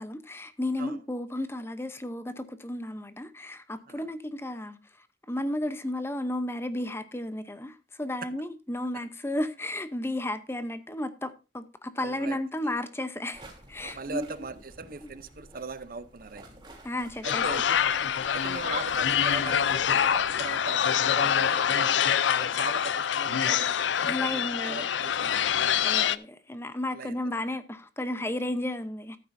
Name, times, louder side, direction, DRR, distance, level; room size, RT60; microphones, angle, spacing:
voice 1, 0.0-14.3 15.0-15.1 16.8-17.4 24.1-24.9 25.8-29.2, left 1 dB, 15° left, 0.7 m, -33 dB
voice 2, 12.0-12.8 13.8-16.4 17.2-17.7 18.3-22.1 22.4-23.8 24.2-25.4 26.9-27.6, right 4 dB, 50° right, 0.7 m, -40 dB
sound 1, 13.3-20.5, right 2 dB, 25° right, 3.0 m, -49 dB
sound 2, 17.2-26.2, left 8 dB, 85° left, 0.5 m, -25 dB
14.0 x 9.1 x 2.6 m
head